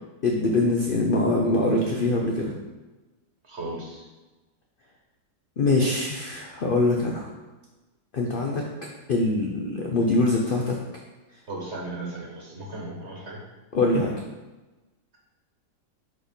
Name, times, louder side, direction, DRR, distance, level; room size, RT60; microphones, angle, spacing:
voice 1, 0.2-2.5 5.6-7.3 8.1-8.6 9.1-10.8 13.7-14.1, left 2 dB, 70° left, 0 dB, 0.5 m, -23 dB
voice 2, 3.4-4.0 11.5-13.4, right 2 dB, 45° right, -2 dB, 1.4 m, -36 dB
4.8 x 4.3 x 5.1 m, 1.1 s
omnidirectional pair, 1.8 m